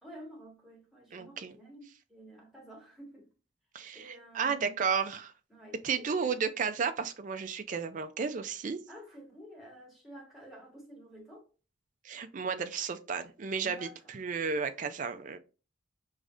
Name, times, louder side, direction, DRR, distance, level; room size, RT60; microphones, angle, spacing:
voice 1, 0.0-3.3 3.9-4.8 5.5-6.3 8.9-11.4 13.6-14.2, right 1 dB, ahead, 1.5 m, -51 dB
voice 2, 1.1-1.5 3.7-5.3 5.8-8.8 12.0-15.4, right 6 dB, 40° right, 0.4 m, -33 dB
4.9 x 3.1 x 2.5 m
head